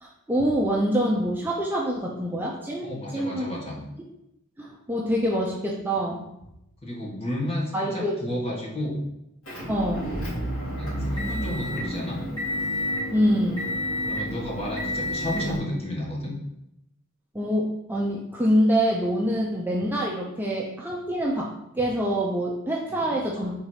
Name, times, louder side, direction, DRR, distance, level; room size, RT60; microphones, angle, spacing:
voice 1, 0.0-3.5 4.6-6.3 7.7-8.1 9.7-10.1 13.1-13.7 17.3-21.5 21.8-23.5, equal, 10° right, -3 dB, 0.7 m, -25 dB
voice 2, 2.8-3.8 6.8-9.0 10.8-12.2 14.0-16.3 22.9-23.2, left 1 dB, 30° left, -4 dB, 1.7 m, -31 dB
Motor vehicle (road) / Engine, 9.5-15.6, equal, 65° left, 2.4 m, -30 dB
4.6 x 4.0 x 5.6 m, 0.84 s
head